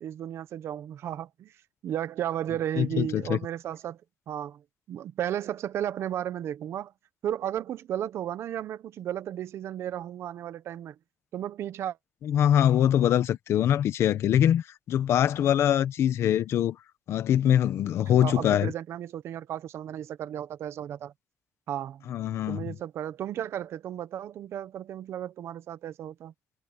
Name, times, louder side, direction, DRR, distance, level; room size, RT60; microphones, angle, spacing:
voice 1, 0.0-1.5 1.8-4.0 4.3-4.6 4.9-6.9 7.2-10.9 11.3-12.0 18.2-21.1 21.7-22.1 22.5-26.3, right 10 dB, 80° right, 1.1 m, -34 dB
voice 2, 2.8-3.4 12.2-16.8 17.1-18.7 22.1-22.7, left 10 dB, 80° left, 1.2 m, -23 dB
cardioid pair, 115°, 4 cm